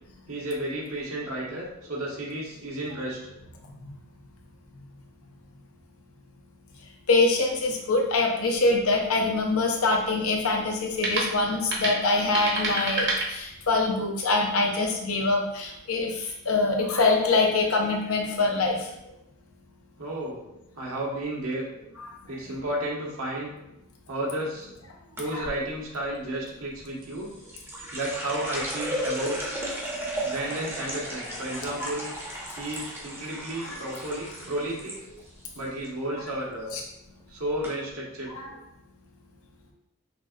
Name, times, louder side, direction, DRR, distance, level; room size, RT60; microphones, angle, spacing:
voice 1, 0.3-3.2 20.0-20.4 20.8-21.6 22.3-23.5 24.1-24.7 25.2-27.3 27.9-29.6 30.2-32.1 32.6-35.0 35.5-36.7 37.3-38.3, right 1 dB, 90° right, -4 dB, 1.3 m, -32 dB
voice 2, 7.1-18.9 22.0-22.1 25.3-25.5 31.5-31.9 33.6-33.8 36.7-36.8 38.3-38.5, left 3 dB, 90° left, 1 dB, 0.8 m, -24 dB
sound 1, 8.5-13.9, right 2 dB, 55° right, 1.0 m, -32 dB
sound 2, 25.2-25.6 27.0-35.0 35.3-35.9 36.2-36.5 37.2-37.3 37.6-37.7, right 1 dB, 10° right, 0.6 m, -35 dB
5.8 x 2.5 x 2.6 m, 0.83 s
head